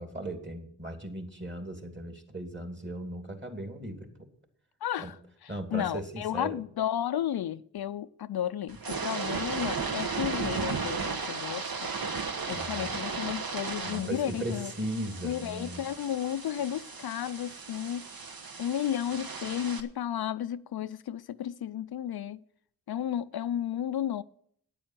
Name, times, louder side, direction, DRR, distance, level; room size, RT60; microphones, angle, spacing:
voice 1, 0.0-4.3 5.0-5.1 5.5-6.6 12.5-12.9 13.9-15.8, right 1 dB, 25° right, 2.9 m, -37 dB
voice 2, 4.8-11.9 12.5-14.7 15.2-18.1 18.6-22.4 22.9-24.2, left 10 dB, 60° left, 0.5 m, -33 dB
sound 1, 8.7-19.8, right 4 dB, 55° right, 1.3 m, -35 dB
9.2 x 8.7 x 7.5 m
cardioid pair, 40°, 42 cm